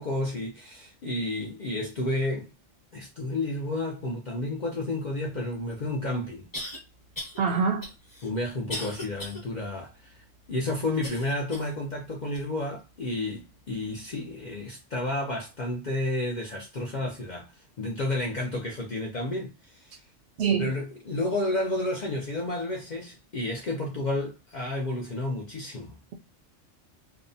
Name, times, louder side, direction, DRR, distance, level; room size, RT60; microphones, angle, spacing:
voice 1, 0.0-2.5 2.9-6.5 8.2-20.0 20.6-26.0, left 2 dB, 55° left, 0.5 m, -31 dB
sound 1, 5.5-5.6 6.5-6.8 7.1-7.4 7.8-9.4 9.9-10.0 11.0-11.8 12.3-12.5 13.2-13.3, left 1 dB, 20° left, 0.8 m, -38 dB
voice 2, 7.4-7.9 20.4-20.7, right 6 dB, 65° right, 0.7 m, -24 dB
2.7 x 2.1 x 2.5 m
omnidirectional pair, 1.3 m